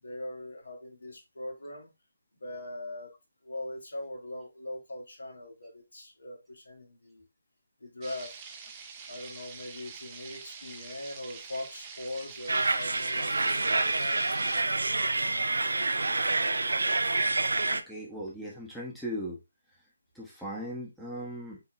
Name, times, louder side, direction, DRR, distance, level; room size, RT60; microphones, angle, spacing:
voice 1, 0.0-1.9 2.4-3.1 3.4-7.3 7.8-8.3 9.1-14.2, left 1 dB, 70° left, 1.7 m, -41 dB
sound 1, 8.0-14.6, right 5 dB, 25° right, 0.7 m, -46 dB
sound 2, 12.5-17.8, right 2 dB, 75° right, 0.5 m, -27 dB
voice 2, 17.7-19.4 20.2-21.6, equal, ahead, 1.0 m, -38 dB
5.4 x 2.8 x 3.0 m
figure-of-eight pair, 145°, 0 cm